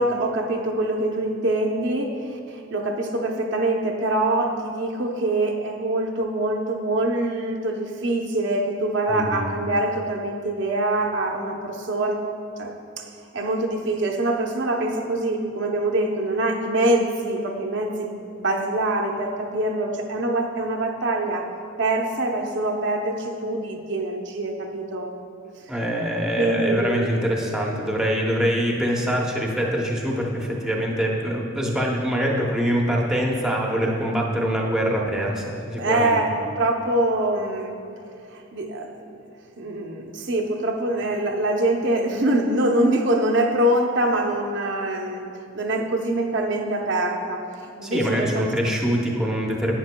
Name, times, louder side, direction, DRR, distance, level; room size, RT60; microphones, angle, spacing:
voice 1, 0.0-12.2 12.6-13.0 13.3-21.5 21.8-25.1 26.4-27.1 35.7-36.3 36.6-37.8 38.3-39.2 39.6-45.3 45.5-47.4 47.8-48.5, right 1 dB, 60° right, 1 dB, 0.7 m, -24 dB
voice 2, 9.1-9.5 25.7-36.2 47.8-49.7, equal, 5° right, -2 dB, 0.7 m, -24 dB
11.0 x 9.1 x 2.2 m, 2.5 s
head